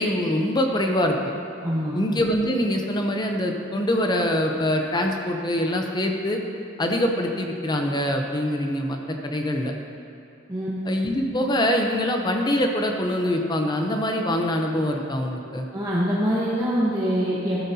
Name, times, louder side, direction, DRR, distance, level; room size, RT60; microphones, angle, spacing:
voice 1, 0.0-1.3 1.9-6.4 6.8-9.7 10.9-15.7, left 1 dB, 20° left, 3 dB, 0.7 m, -24 dB
voice 2, 1.6-2.0 10.5-10.7 15.7-17.6, equal, 20° right, -7 dB, 1.1 m, -24 dB
14.0 x 7.9 x 2.8 m, 2.7 s
head